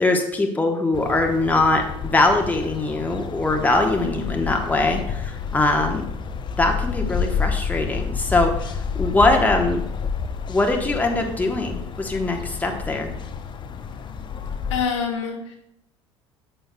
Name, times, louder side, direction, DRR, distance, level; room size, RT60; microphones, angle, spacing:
voice 1, 0.0-6.0 6.6-8.7 9.0-9.8 10.5-13.1, left 2 dB, 10° left, 2 dB, 1.2 m, -22 dB
sound 1, 0.9-14.8, left 6 dB, 30° left, 0.7 m, -29 dB
voice 2, 4.0-4.5 14.7-15.6, left 6 dB, 70° left, 1 dB, 1.3 m, -29 dB
9.7 x 7.8 x 2.3 m, 0.78 s
figure-of-eight pair, 65°, 16 cm